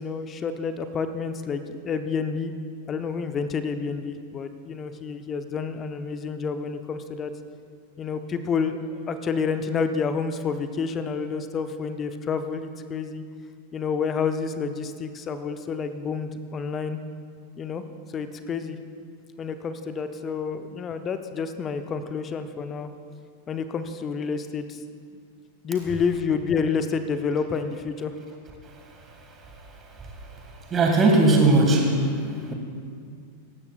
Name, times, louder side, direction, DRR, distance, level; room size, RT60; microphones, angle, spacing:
voice 1, 0.0-2.5 2.9-7.3 8.0-13.2 13.7-17.0 17.6-17.8 18.1-18.8 19.4-22.9 23.5-24.8 25.6-28.1 32.4-32.5, left 5 dB, 25° left, 9 dB, 0.7 m, -29 dB
voice 2, 30.7-32.0 32.5-32.6, right 2 dB, 25° right, 1 dB, 1.8 m, -18 dB
18.0 x 15.0 x 2.4 m, 2.2 s
figure-of-eight pair, 90°, 0 cm